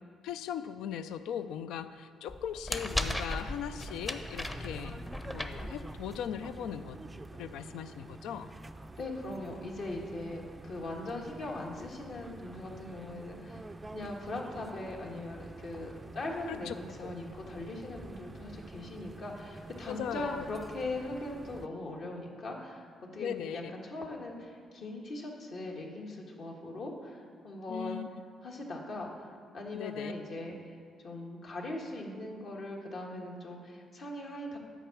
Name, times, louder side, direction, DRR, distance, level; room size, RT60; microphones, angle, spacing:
voice 1, 0.2-5.0 5.3-7.0 7.3-8.5 16.5-16.7 17.0-17.2 19.9-20.4 23.2-23.6 27.7-28.1 29.7-30.1, left 9 dB, 90° left, 11 dB, 0.3 m, -39 dB
sound 1, 2.3-6.3, left 1 dB, 15° left, 0.7 m, -37 dB
sound 2, 2.7-21.7, right 2 dB, 20° right, 0.3 m, -48 dB
voice 2, 9.0-28.0 28.4-30.8 31.0-34.6, left 2 dB, 60° left, -1 dB, 1.5 m, -40 dB
10.0 x 4.8 x 7.1 m, 2.1 s
cardioid pair, 90°, 0 cm